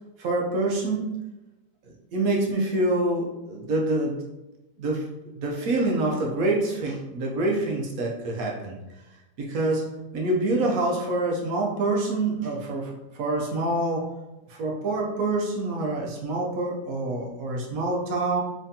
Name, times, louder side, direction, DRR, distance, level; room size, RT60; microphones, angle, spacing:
voice 1, 0.2-1.2 2.1-4.2 4.8-5.0 5.4-8.7 9.4-9.9 10.1-14.1 14.5-18.4, right 2 dB, 65° right, -1 dB, 1.0 m, -26 dB
3.6 x 3.2 x 2.7 m, 1.0 s
omnidirectional pair, 1.7 m